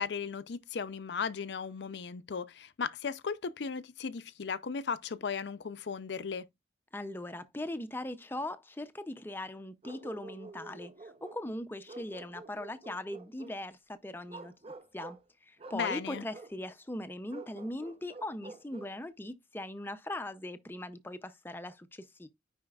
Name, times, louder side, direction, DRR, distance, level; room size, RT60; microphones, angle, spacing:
voice 1, 0.0-6.5 15.7-16.2, left 6 dB, 75° left, 0.5 m, -36 dB
voice 2, 6.9-14.5 14.9-22.3, left 1 dB, 10° left, 0.5 m, -40 dB
Bark, 9.8-11.4 11.9-13.6 14.3-15.2 15.6-16.5 17.3-19.0, right 3 dB, 30° right, 0.8 m, -48 dB
9.6 x 4.2 x 2.4 m
head